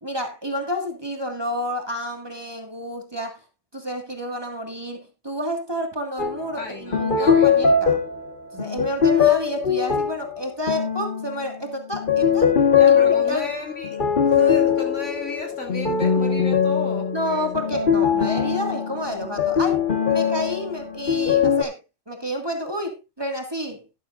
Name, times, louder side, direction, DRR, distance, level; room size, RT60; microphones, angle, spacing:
voice 1, 0.0-3.4 3.7-8.0 8.5-12.5 12.9-13.4 17.1-21.8 22.1-23.8, equal, 20° right, 1.9 m, -30 dB
sound 1, 6.2-6.5 6.9-11.5 11.9-21.6, left 7 dB, 40° left, 1.5 m, -21 dB
voice 2, 6.6-7.8 12.7-14.0 14.2-17.6, left 2 dB, 70° left, 3.5 m, -34 dB
12.5 x 12.0 x 2.5 m
omnidirectional pair, 1.3 m